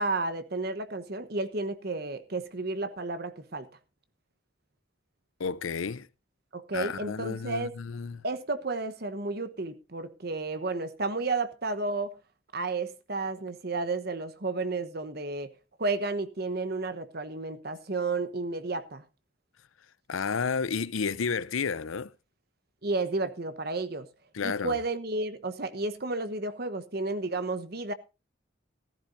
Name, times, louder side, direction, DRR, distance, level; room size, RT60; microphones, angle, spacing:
voice 1, 0.0-3.7 6.5-7.7 8.2-12.1 12.5-15.5 15.8-19.0 22.8-24.1 24.4-27.9, right 3 dB, 50° right, 1.1 m, -32 dB
voice 2, 5.4-6.1 6.7-8.2 20.1-22.1 24.3-24.8, left 5 dB, 90° left, 0.6 m, -31 dB
15.0 x 14.0 x 2.7 m
head